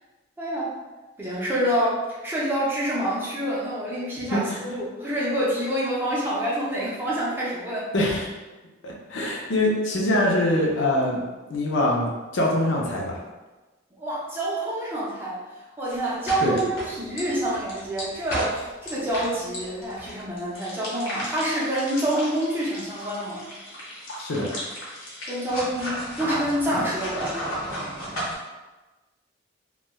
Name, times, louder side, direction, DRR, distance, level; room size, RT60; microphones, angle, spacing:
voice 1, 0.4-0.7 1.2-7.9 14.0-15.4 15.8-23.4 25.3-27.5, right 1 dB, 10° right, -7 dB, 0.5 m, -27 dB
voice 2, 7.9-8.3 8.8-11.2 11.5-13.2 16.4-16.5 24.2-24.5, left 1 dB, 70° left, -2 dB, 0.5 m, -24 dB
sound 1, 15.9-28.3, equal, 90° left, 0.9 m, -34 dB
3.1 x 2.1 x 2.2 m, 1.2 s
head